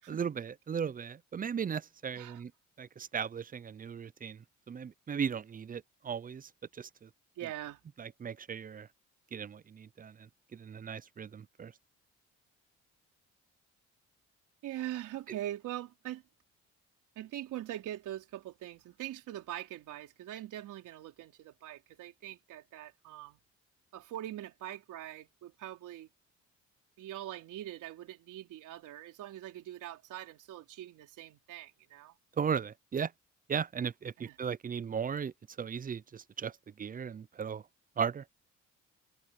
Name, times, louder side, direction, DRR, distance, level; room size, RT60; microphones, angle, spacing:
voice 1, 0.1-2.5 2.8-7.1 8.0-8.9 9.3-11.7 32.4-33.1 33.5-37.6 38.0-38.2, right 7 dB, 30° right, 0.5 m, -37 dB
voice 2, 7.4-7.8 14.6-16.2 17.2-23.4 23.9-26.1 27.0-32.2 34.2-34.4, right 13 dB, 85° right, 4.2 m, -43 dB
cardioid pair, 90°, 30 cm